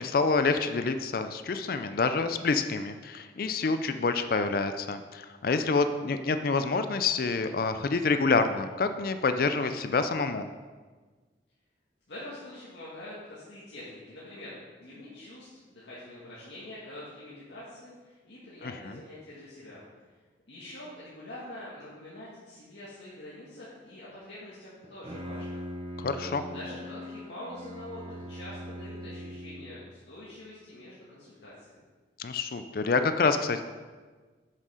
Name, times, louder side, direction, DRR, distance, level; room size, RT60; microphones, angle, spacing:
voice 1, 0.0-10.5 18.6-19.0 26.0-26.4 32.2-33.6, left 4 dB, 50° left, 9 dB, 0.4 m, -27 dB
voice 2, 12.1-19.8 20.5-25.6 26.1-31.7, left 1 dB, 70° left, -8 dB, 1.7 m, -45 dB
Bowed string instrument, 24.8-29.9, equal, 30° right, 0.7 m, -41 dB
7.3 x 6.6 x 4.9 m, 1.4 s
head